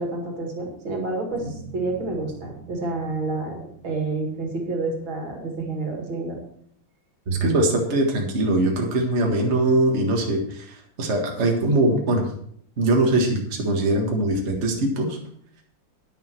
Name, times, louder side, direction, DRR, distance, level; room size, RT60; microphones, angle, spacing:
voice 1, 0.0-3.6 3.8-6.4, right 3 dB, 70° right, 1 dB, 3.0 m, -29 dB
sound 1, 1.3-5.3, right 5 dB, 70° left, 7.0 m, -45 dB
voice 2, 7.3-12.3 12.8-15.2, right 2 dB, 35° right, 0 dB, 1.9 m, -22 dB
10.5 x 10.0 x 4.6 m, 0.65 s
omnidirectional pair, 2.3 m